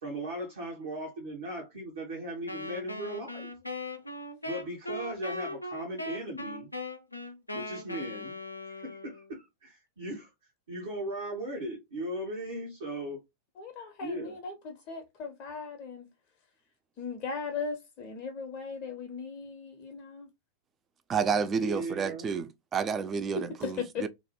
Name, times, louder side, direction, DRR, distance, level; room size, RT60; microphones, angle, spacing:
voice 1, 0.0-3.5 4.4-6.7 7.5-8.3 8.7-10.3 10.7-13.2 14.0-14.4 21.2-22.3, right 1 dB, 60° right, 0.9 m, -38 dB
Wind instrument woodwind instrument, 2.5-9.3, left 1 dB, 85° left, 0.4 m, -39 dB
voice 2, 13.6-16.1 17.0-20.3 23.3-24.1, left 5 dB, 35° left, 0.5 m, -38 dB
voice 3, 21.1-24.1, right 6 dB, 25° right, 0.3 m, -30 dB
2.5 x 2.1 x 2.7 m
figure-of-eight pair, 90°, 0 cm